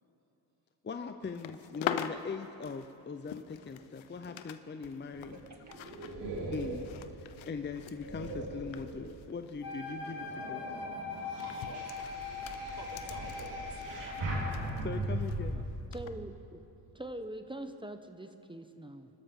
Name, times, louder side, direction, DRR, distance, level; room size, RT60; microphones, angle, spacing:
voice 1, 0.8-5.4 6.4-6.9 7.2-10.7 14.8-15.6, left 5 dB, 25° left, 7 dB, 0.7 m, -40 dB
sound 1, 1.2-4.6 4.8-9.8 10.1-10.3 11.1-15.4 15.9-16.1, left 10 dB, 70° left, 0.9 m, -44 dB
sound 2, 5.1-9.3 9.9-15.5, right 1 dB, 60° right, 4.5 m, -39 dB
voice 2, 5.5-6.1 8.3-8.5 9.7-10.1 11.9-12.4 12.8-14.4 16.8-17.0, right 3 dB, 35° right, 2 dB, 2.3 m, -52 dB
Wind instrument woodwind instrument, 9.6-14.7, left 4 dB, 45° left, 2.7 m, -41 dB
voice 3, 15.9-16.6 16.9-19.1, right 1 dB, 10° right, 8 dB, 0.9 m, -43 dB
26.5 x 13.0 x 3.8 m, 2.9 s
cardioid pair, 75°, 48 cm